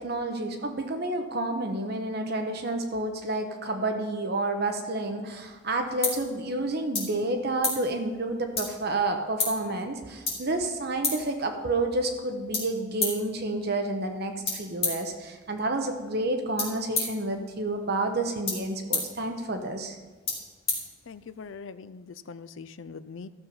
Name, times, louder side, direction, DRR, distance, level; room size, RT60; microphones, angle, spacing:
voice 1, 0.0-20.0, right 2 dB, 50° right, 5 dB, 1.0 m, -30 dB
sound 1, 5.3-21.5, left 4 dB, 30° left, 3.8 m, -36 dB
voice 2, 21.1-23.3, left 5 dB, 65° left, 14 dB, 0.5 m, -42 dB
14.0 x 6.9 x 5.5 m, 1.3 s
head